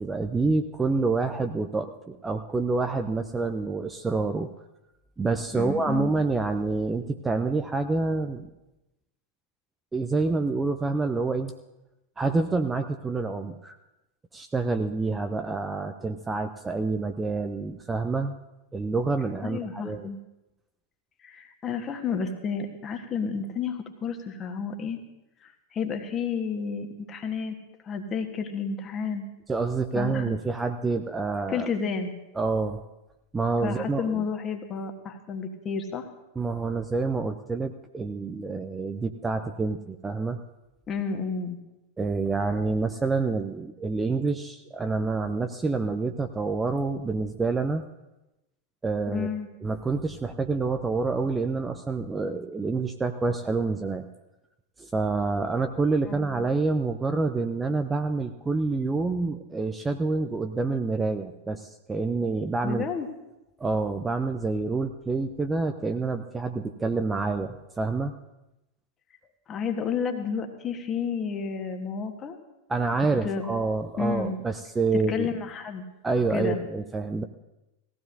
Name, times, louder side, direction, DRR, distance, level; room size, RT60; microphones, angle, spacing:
voice 1, 0.0-4.5 5.2-8.5 9.9-11.5 12.2-13.8 14.3-18.4 18.7-20.1 29.5-31.7 32.4-32.8 33.3-34.2 36.4-40.4 42.0-47.8 48.8-49.3 49.6-54.0 54.8-62.8 63.6-68.1 72.7-75.3 76.0-77.2, right 3 dB, 15° right, 7 dB, 0.6 m, -27 dB
voice 2, 5.5-6.1 19.4-20.2 21.2-25.0 25.4-27.6 27.8-29.3 29.9-30.2 31.5-32.2 33.6-36.1 40.9-41.6 49.1-49.5 56.0-56.3 62.6-63.1 69.5-72.4 73.2-73.5 74.0-74.4 74.9-75.8 76.3-76.6, left 5 dB, 25° left, 5 dB, 1.4 m, -31 dB
18.5 x 15.0 x 2.7 m, 0.96 s
figure-of-eight pair, 90°, 0 cm